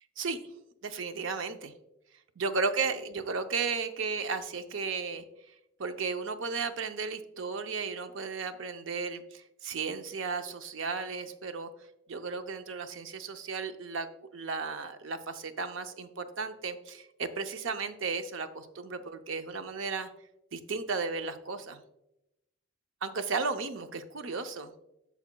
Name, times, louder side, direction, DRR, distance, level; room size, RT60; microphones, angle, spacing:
voice 1, 0.8-1.7 2.4-5.2 5.8-11.7 12.1-14.1 14.3-20.1 20.5-21.8 23.0-24.7, right 4 dB, 85° right, 9 dB, 0.6 m, -34 dB
10.5 x 6.8 x 2.2 m, 0.89 s
head